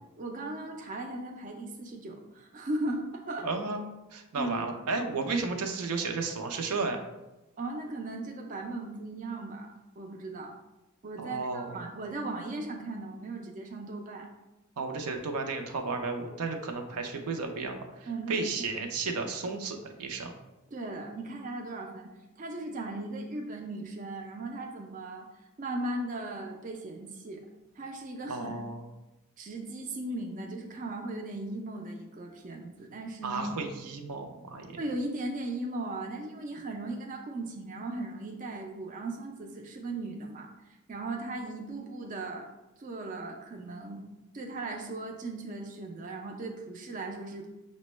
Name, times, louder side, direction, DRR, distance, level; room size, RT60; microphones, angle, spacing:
voice 1, 0.2-3.5 4.3-4.6 7.6-9.7 10.0-10.5 11.0-14.3 18.1-18.4 20.7-22.1 22.4-25.3 25.6-27.4 27.8-28.5 29.4-33.6 34.8-42.5 42.8-44.0 44.3-47.5, right 2 dB, 35° right, 1 dB, 0.4 m, -37 dB
voice 2, 3.4-3.8 4.1-7.0 11.2-11.8 14.8-20.3 28.3-28.9 33.2-34.8, right 3 dB, 85° right, 4 dB, 0.5 m, -33 dB
5.9 x 2.1 x 3.1 m, 1.0 s
head